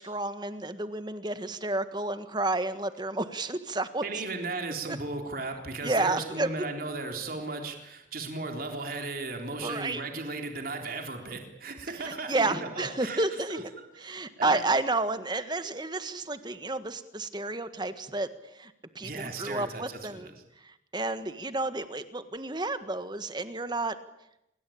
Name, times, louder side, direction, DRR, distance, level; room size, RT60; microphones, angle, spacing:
voice 1, 0.0-4.0 4.9-5.0 5.8-6.7 9.6-10.0 12.0-13.6 14.0-18.3 18.5-20.3 20.6-24.0, right 2 dB, 25° right, 11 dB, 1.6 m, -31 dB
voice 2, 4.0-13.2 13.5-13.6 14.0-14.6 19.0-20.0, right 3 dB, 50° right, 3 dB, 3.7 m, -36 dB
27.5 x 22.5 x 8.7 m, 0.85 s
head